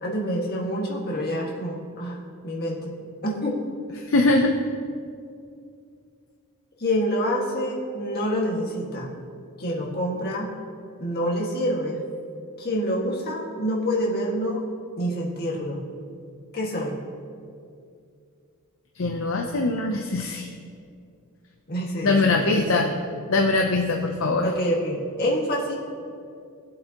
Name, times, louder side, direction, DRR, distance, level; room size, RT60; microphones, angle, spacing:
voice 1, 0.0-2.9 3.2-3.6 6.8-9.1 9.6-10.5 11.0-12.0 12.6-14.6 15.0-15.8 16.5-17.0 21.7-22.9 24.4-25.7, equal, 45° left, -3 dB, 1.7 m, -27 dB
voice 2, 4.0-4.6 19.0-20.5 22.0-22.9 23.3-24.5, left 2 dB, 60° left, 3 dB, 0.6 m, -22 dB
18.5 x 7.7 x 2.9 m, 2.4 s
head